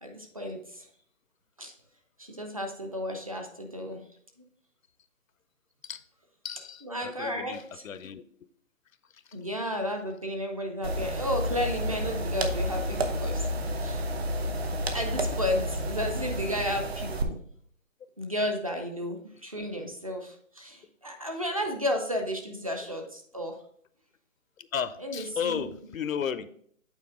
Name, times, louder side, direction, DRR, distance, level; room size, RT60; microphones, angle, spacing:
voice 1, 0.0-0.9 1.6-1.7 2.2-4.0 6.8-7.8 9.3-13.5 13.8-14.1 14.6-17.4 18.2-23.6 25.0-25.7, equal, 25° right, 3 dB, 0.6 m, -33 dB
voice 2, 6.4-8.2 9.1-9.2 24.6-26.5, left 7 dB, 80° left, 14 dB, 0.7 m, -34 dB
sound 1, 10.8-17.2, equal, 50° right, 0.9 m, -30 dB
8.2 x 4.3 x 3.5 m, 0.62 s
hypercardioid pair, 165°, 40 cm